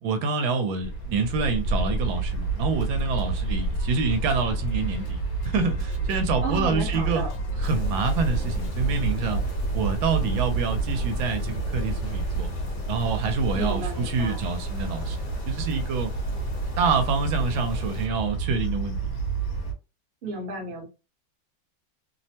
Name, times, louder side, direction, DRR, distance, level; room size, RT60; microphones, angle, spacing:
voice 1, 0.0-7.2 7.6-9.4 9.7-12.5 12.9-15.2 15.5-16.1 16.8-19.0, right 4 dB, 80° right, 1.3 m, -27 dB
sound 1, 0.8-19.7, right 3 dB, 65° left, 1.5 m, -29 dB
Drum kit, 2.8-8.8, right 5 dB, 85° left, 0.7 m, -42 dB
voice 2, 6.4-7.4 13.5-14.4 20.2-20.8, right 3 dB, 45° right, 0.9 m, -33 dB
sound 2, 7.6-18.1, right 2 dB, 45° left, 1.0 m, -35 dB
3.2 x 2.0 x 2.7 m
omnidirectional pair, 2.2 m